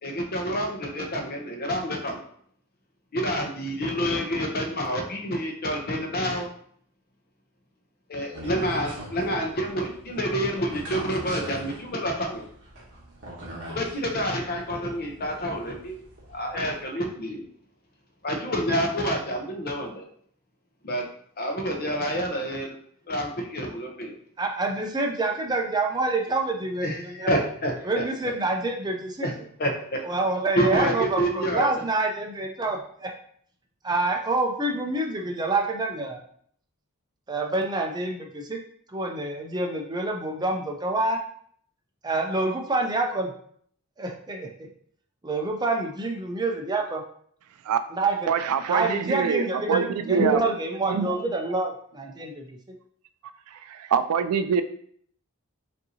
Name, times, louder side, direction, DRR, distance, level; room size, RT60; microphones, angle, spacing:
voice 1, 0.0-2.2 3.1-6.5 8.1-12.4 13.7-16.0 16.3-17.4 18.2-20.1 20.8-21.0 21.4-22.7 23.1-24.1 26.8-27.8 29.2-29.3 29.6-30.0 30.6-31.7, equal, 45° left, 2 dB, 0.7 m, -28 dB
sound 1, 8.3-16.8, right 1 dB, 55° right, 1.2 m, -43 dB
voice 2, 24.4-27.4 27.8-29.3 30.0-33.1 33.8-36.2 37.3-38.6 38.9-41.2 42.0-43.3 44.0-44.7 45.2-47.0 47.9-48.3 48.7-52.6, right 2 dB, 20° right, 2 dB, 0.5 m, -27 dB
voice 3, 48.3-50.5 50.9-51.3 53.5-54.6, right 6 dB, 75° right, 11 dB, 0.3 m, -25 dB
5.2 x 2.7 x 2.8 m, 0.62 s
head